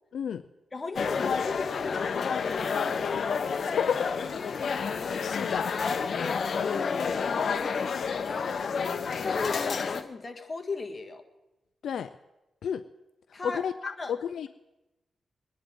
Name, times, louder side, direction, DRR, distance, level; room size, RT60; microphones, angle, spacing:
voice 1, 0.7-2.9 9.2-11.2 13.3-14.1, left 3 dB, 35° left, 4 dB, 1.7 m, -36 dB
sound 1, 1.0-10.0, left 5 dB, 60° left, 0.9 m, -29 dB
sound 2, 2.5-4.1, right 2 dB, 5° left, 3.2 m, -53 dB
voice 2, 5.0-5.8 11.8-12.1 12.6-12.8 13.4-14.5, left 8 dB, 80° left, 11 dB, 0.4 m, -31 dB
23.5 x 10.5 x 3.8 m, 0.99 s
cardioid pair, 65°, 0 cm